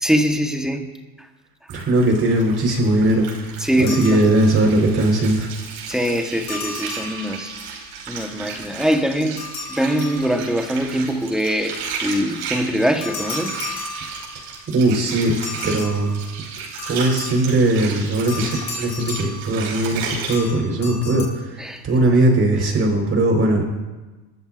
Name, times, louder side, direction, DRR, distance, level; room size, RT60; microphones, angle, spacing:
voice 1, 0.0-0.9 3.6-4.3 5.9-7.5 8.1-9.4 9.7-13.5 21.6-21.8, equal, ahead, 4 dB, 1.2 m, -22 dB
voice 2, 1.7-5.5 14.4-14.5 14.7-15.4 15.6-16.2 16.9-23.6, right 1 dB, 30° right, 1 dB, 4.3 m, -19 dB
Water, 1.7-20.4, right 5 dB, 80° right, 5.2 m, -34 dB
sound 1, 3.9-4.8 6.5-7.8 9.4-10.8 13.0-14.6 15.4-17.7 18.3-20.0 20.3-21.2, left 3 dB, 45° left, 4.0 m, -34 dB
29.0 x 13.5 x 2.5 m, 1.2 s
supercardioid pair, 125°, 45 cm